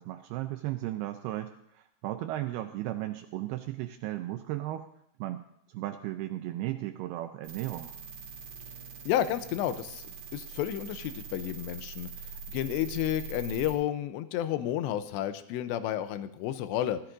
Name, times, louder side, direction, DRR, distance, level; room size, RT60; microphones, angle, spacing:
voice 1, 0.0-4.9 5.2-5.4 5.7-8.0, right 15 dB, 85° right, 8 dB, 2.2 m, -35 dB
sound 1, 7.4-13.8, right 5 dB, 65° right, 3.5 m, -43 dB
voice 2, 9.1-10.1 10.3-12.1 12.5-17.0, left 12 dB, 85° left, 11 dB, 2.8 m, -31 dB
16.5 x 14.5 x 2.6 m, 0.80 s
omnidirectional pair, 5.1 m